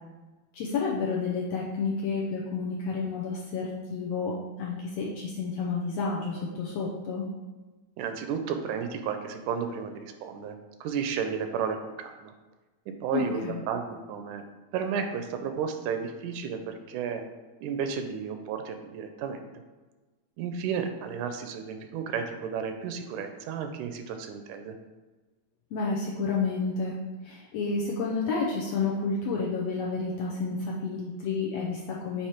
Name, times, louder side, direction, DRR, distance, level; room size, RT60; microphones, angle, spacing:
voice 1, 0.5-7.3 13.1-13.6 25.7-27.0 27.2-32.3, left 4 dB, 75° left, -4 dB, 1.6 m, -30 dB
voice 2, 8.0-12.3 12.9-14.4 14.7-17.2 17.6-19.4 20.4-24.8, right 6 dB, 80° right, 6 dB, 2.0 m, -33 dB
8.1 x 3.0 x 4.4 m, 1.2 s
omnidirectional pair, 3.6 m